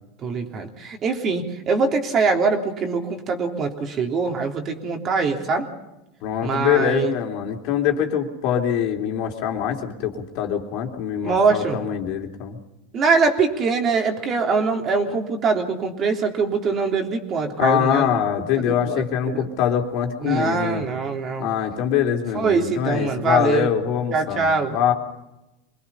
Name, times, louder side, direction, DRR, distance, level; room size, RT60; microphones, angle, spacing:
voice 1, 0.2-5.7 6.4-7.1 11.2-11.8 12.9-19.5 20.2-21.5 22.3-23.7 24.1-24.8, right 4 dB, 35° right, 3 dB, 3.4 m, -23 dB
voice 2, 6.2-12.6 17.6-20.8 21.4-24.9, left 9 dB, 60° left, 2 dB, 3.3 m, -23 dB
25.0 x 21.0 x 5.7 m, 0.95 s
hypercardioid pair, 105°, 0 cm